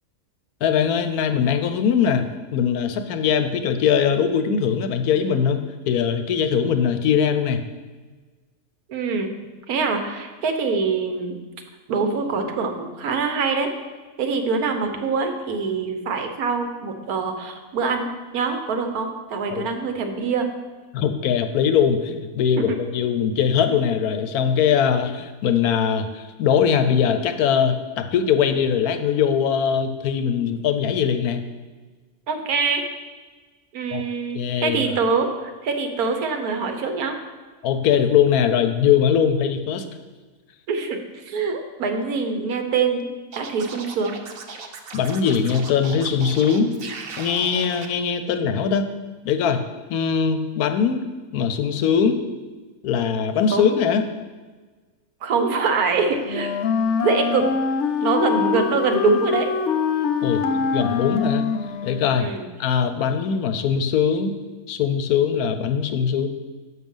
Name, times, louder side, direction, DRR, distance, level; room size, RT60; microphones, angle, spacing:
voice 1, 0.6-2.2 2.5-5.6 5.9-7.6 19.5-19.6 20.9-31.4 33.9-34.0 34.3-34.8 37.6-39.8 44.9-46.8 47.2-48.8 49.2-49.6 49.9-51.0 51.3-52.2 52.8-54.1 60.2-61.4 61.8-62.3 62.6-64.3 64.7-66.3, left 7 dB, 80° left, 8 dB, 1.1 m, -21 dB
voice 2, 8.9-9.3 9.7-11.4 11.9-13.7 14.2-20.5 22.6-22.8 32.3-32.8 33.7-37.2 40.7-43.1 43.4-44.2 53.5-53.7 55.2-56.5 57.0-57.5 58.0-59.5 62.2-62.5, right 4 dB, 80° right, 6 dB, 1.4 m, -24 dB
Scratching (performance technique), 43.3-47.9, right 5 dB, 50° right, 0.7 m, -37 dB
Wind instrument woodwind instrument, 56.2-62.2, left 5 dB, 60° left, 0.9 m, -24 dB
6.6 x 6.1 x 5.4 m, 1.3 s
omnidirectional pair, 1.6 m